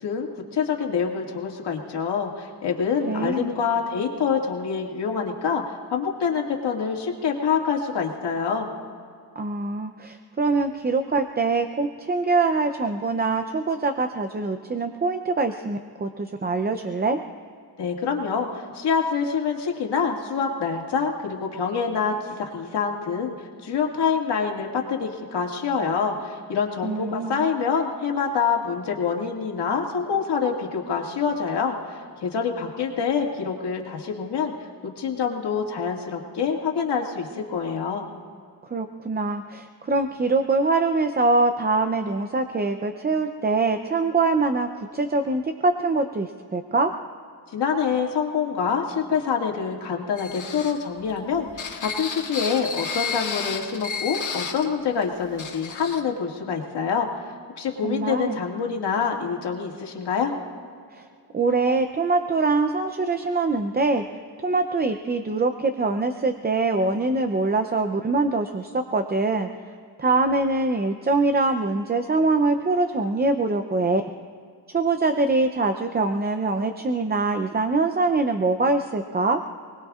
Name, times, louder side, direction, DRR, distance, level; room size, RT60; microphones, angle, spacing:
voice 1, 0.0-5.6 5.9-8.7 17.8-23.3 23.6-34.5 34.8-38.1 47.5-57.1 57.5-60.3, left 6 dB, 70° left, 0 dB, 2.2 m, -26 dB
voice 2, 3.1-3.5 9.4-17.2 26.8-27.4 38.7-46.9 57.8-58.4 60.9-61.0 61.3-64.0 64.4-69.5 70.0-74.0 74.7-79.4, right 3 dB, 25° right, 7 dB, 0.6 m, -23 dB
sound 1, 50.2-54.7 55.0-55.1 55.4-56.0, left 6 dB, 45° left, 1.8 m, -32 dB
29.0 x 20.0 x 2.4 m, 2.2 s
wide cardioid pair, 135°, 43 cm